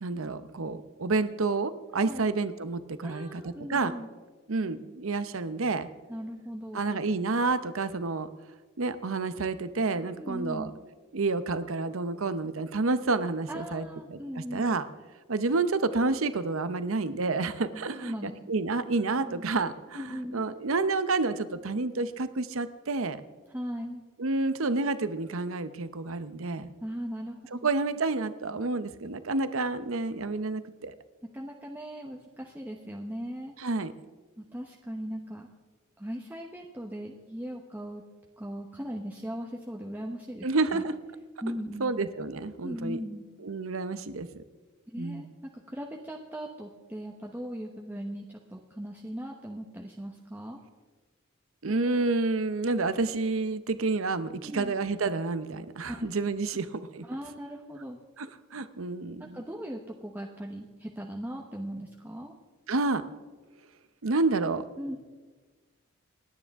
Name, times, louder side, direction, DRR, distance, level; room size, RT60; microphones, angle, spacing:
voice 1, 0.0-3.9 4.5-5.9 6.7-8.3 8.8-10.7 11.1-14.8 15.3-23.2 24.2-26.7 27.5-30.9 33.6-33.9 40.4-40.9 41.8-43.0 43.4-44.3 45.0-45.3 51.6-57.0 58.2-59.4 62.7-63.0 64.0-64.6, right 3 dB, 70° right, 12 dB, 0.8 m, -29 dB
voice 2, 3.0-4.1 6.1-7.0 10.1-10.7 13.5-14.8 17.7-18.3 19.2-19.4 19.9-20.4 23.5-24.0 26.8-27.6 31.3-33.5 34.4-35.5 36.0-38.0 38.4-40.5 40.7-40.8 41.4-42.0 42.6-43.3 44.9-50.6 54.4-54.7 55.9-56.1 57.1-58.0 59.2-62.3 64.8-65.0, equal, 10° right, 0 dB, 1.0 m, -38 dB
28.0 x 9.6 x 3.6 m, 1.3 s
head